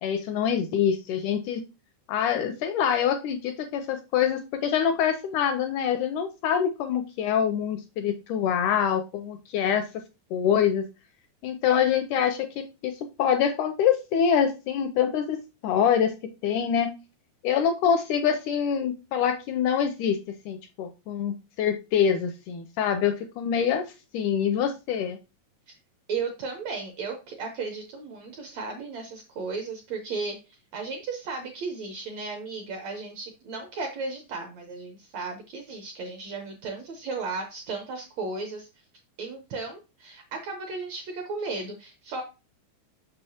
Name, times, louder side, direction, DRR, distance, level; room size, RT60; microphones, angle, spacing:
voice 1, 0.0-1.6 2.1-9.9 10.3-10.8 11.4-15.4 15.6-16.9 17.4-20.2 20.5-25.2, left 8 dB, 85° left, 7 dB, 1.8 m, -25 dB
voice 2, 26.1-30.4 30.7-38.7 39.2-42.2, right 4 dB, 75° right, 4 dB, 1.6 m, -35 dB
6.6 x 6.1 x 2.8 m, 0.28 s
omnidirectional pair, 4.1 m